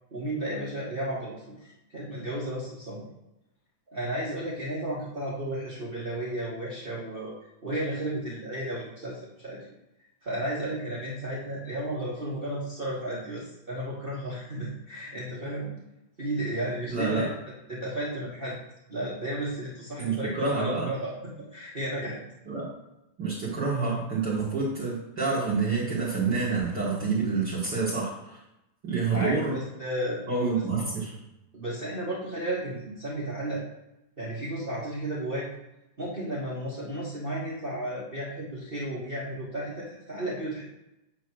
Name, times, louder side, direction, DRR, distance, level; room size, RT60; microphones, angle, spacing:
voice 1, 0.1-3.0 3.9-7.3 7.6-9.7 10.2-15.7 16.2-17.3 17.7-18.6 18.9-21.1 21.4-22.2 29.0-30.2 31.5-33.6 34.2-35.5 36.0-40.6, right 1 dB, 75° right, -6 dB, 0.5 m, -33 dB
voice 2, 16.9-17.3 20.0-20.9 22.5-22.7 23.2-28.4 28.8-29.6 30.3-31.1, right 4 dB, 45° right, -6 dB, 1.6 m, -28 dB
8.6 x 3.1 x 6.2 m, 0.91 s
omnidirectional pair, 3.6 m